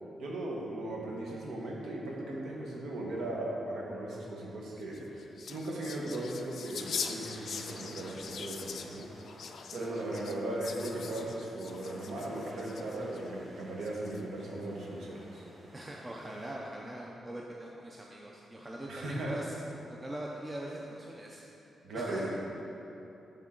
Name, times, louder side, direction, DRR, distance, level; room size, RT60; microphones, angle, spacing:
voice 1, 0.2-9.1 9.7-15.4 18.9-19.4 21.8-22.3, right 1 dB, 75° right, -3 dB, 1.2 m, -37 dB
sound 1, 4.8-13.2 13.8-14.4, left 6 dB, 55° left, 0.3 m, -42 dB
sound 2, 6.5-16.5, right 1 dB, 45° right, 1.2 m, -55 dB
voice 2, 9.7-10.1 15.7-19.5 19.9-21.4 21.9-22.3, right 1 dB, 15° right, -2 dB, 0.4 m, -42 dB
10.0 x 3.6 x 3.8 m, 2.9 s
wide cardioid pair, 160°, 0 cm